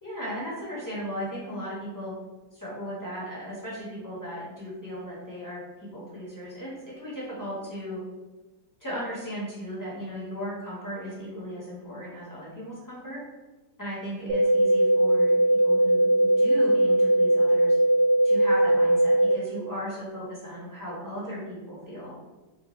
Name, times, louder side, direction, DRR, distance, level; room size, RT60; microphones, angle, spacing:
voice 1, 0.0-2.1 2.5-5.6 5.9-8.0 8.8-13.2 13.8-17.8 18.2-22.2, equal, 15° left, -8 dB, 0.9 m, -36 dB
sound 1, 14.3-19.3, right 1 dB, 60° right, 0.8 m, -20 dB
4.5 x 2.1 x 3.1 m, 1.2 s
omnidirectional pair, 1.9 m